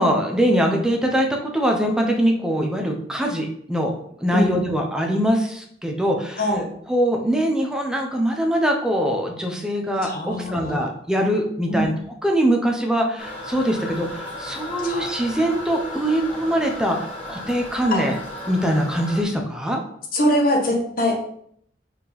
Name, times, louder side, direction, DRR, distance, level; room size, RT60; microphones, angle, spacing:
voice 1, 0.0-3.9 4.2-6.4 6.9-11.9 12.2-18.2 18.5-19.8, equal, 5° right, 1 dB, 1.0 m, -22 dB
voice 2, 6.4-6.7 10.0-10.9 11.7-11.9 14.8-15.1 17.9-18.0 20.1-21.2, left 1 dB, 50° left, -1 dB, 1.5 m, -22 dB
Toilet flush, 13.2-19.2, left 1 dB, 30° left, 2.4 m, -35 dB
5.2 x 4.5 x 5.3 m, 0.67 s
head